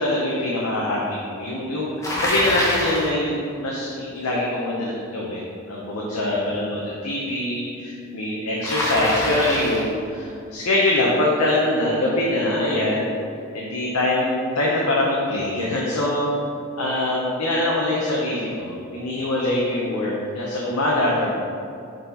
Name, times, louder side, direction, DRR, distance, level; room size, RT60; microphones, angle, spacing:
voice 1, 0.0-3.3 3.6-5.4 5.7-13.1 13.5-16.3 16.8-21.3, left 1 dB, 80° left, -4 dB, 0.9 m, -23 dB
Bicycle, 2.0-3.1 8.6-9.9, left 1 dB, 15° left, 0.9 m, -25 dB
6.7 x 4.0 x 4.0 m, 2.6 s
head